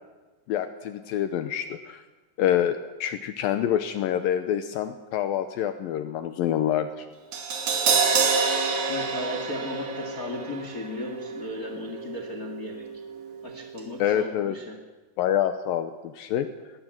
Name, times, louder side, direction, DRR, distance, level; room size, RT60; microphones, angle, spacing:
voice 1, 0.5-2.0 2.4-7.1 14.0-14.6 15.2-16.5, left 10 dB, 75° left, 9 dB, 2.4 m, -26 dB
Crash cymbal, 7.3-13.5 13.8-13.9, right 5 dB, 50° right, 3.7 m, -28 dB
voice 2, 8.8-12.9 13.4-14.8, left 2 dB, 30° left, 4 dB, 1.8 m, -36 dB
21.0 x 19.0 x 7.8 m, 1.2 s
omnidirectional pair, 4.5 m